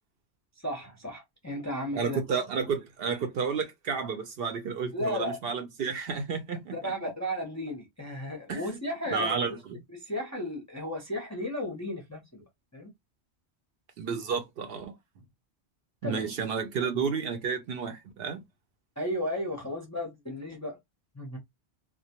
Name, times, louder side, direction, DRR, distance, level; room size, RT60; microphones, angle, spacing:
voice 1, 0.6-2.2 4.9-5.4 6.7-9.4 9.9-12.4 12.7-12.9 16.0-16.3 19.0-20.8 21.1-21.4, left 1 dB, 20° left, 0.5 m, -34 dB
voice 2, 2.0-6.8 8.5-8.7 9.1-9.6 14.0-14.9 16.0-18.4, right 6 dB, 65° right, 0.7 m, -31 dB
2.2 x 2.1 x 2.7 m
omnidirectional pair, 1.1 m